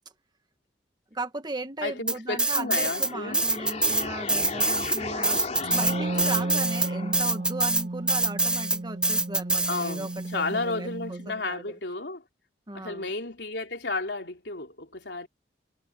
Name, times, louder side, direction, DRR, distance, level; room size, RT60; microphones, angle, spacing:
voice 1, 1.1-11.6 12.7-13.1, right 2 dB, 25° right, 1.5 m, -37 dB
voice 2, 1.8-3.5 9.7-12.2 12.7-15.3, left 3 dB, 75° left, 3.5 m, -32 dB
sound 1, 2.1-3.1 3.3-10.2, right 2 dB, 5° right, 0.7 m, -25 dB
sound 2, 2.5-7.5, left 3 dB, 40° left, 3.4 m, -36 dB
Wind instrument woodwind instrument, 5.6-11.3, right 2 dB, 40° right, 0.5 m, -33 dB
head